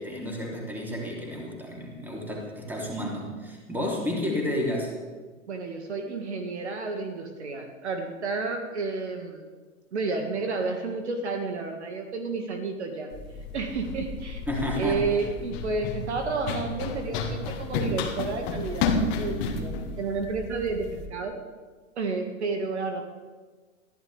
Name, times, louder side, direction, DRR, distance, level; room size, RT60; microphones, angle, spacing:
voice 1, 0.0-4.9 14.5-15.0, left 1 dB, 5° right, -2 dB, 3.4 m, -31 dB
voice 2, 5.5-9.5 9.9-13.1 13.5-14.4 14.8-21.4 22.0-23.0, right 4 dB, 55° right, 4 dB, 2.0 m, -31 dB
Run, 13.1-21.1, left 4 dB, 30° left, 2.0 m, -32 dB
22.0 x 14.5 x 3.5 m, 1.4 s
figure-of-eight pair, 105°, 39 cm